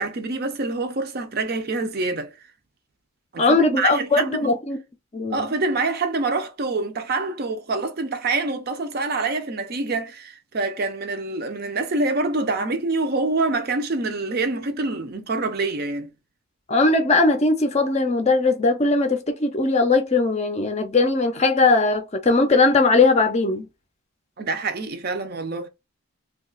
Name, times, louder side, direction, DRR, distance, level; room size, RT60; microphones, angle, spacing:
voice 1, 0.0-2.3 3.3-4.6 5.3-16.1 24.4-25.7, right 3 dB, 45° right, 0.5 m, -26 dB
voice 2, 3.4-4.8 5.1-5.5 16.7-23.7, left 3 dB, 30° left, 0.5 m, -19 dB
2.8 x 2.3 x 3.8 m
head